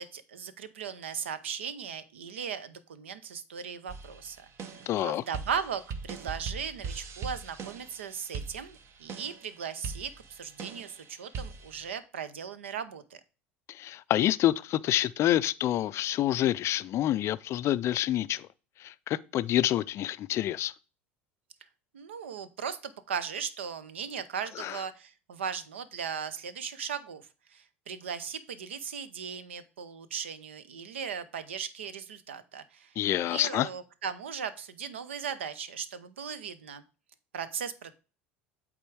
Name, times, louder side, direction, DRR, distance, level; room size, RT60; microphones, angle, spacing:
voice 1, 0.0-13.2 21.9-27.2 27.5-32.9 33.2-36.8 37.3-37.9, right 7 dB, 80° right, 0.6 m, -38 dB
sound 1, 3.9-11.9, right 5 dB, 45° right, 0.8 m, -41 dB
voice 2, 4.9-5.2 13.7-18.5 18.8-20.7 24.6-24.8 33.0-33.7, left 13 dB, 45° left, 0.4 m, -27 dB
8.3 x 3.7 x 4.6 m
hypercardioid pair, 75°, 6 cm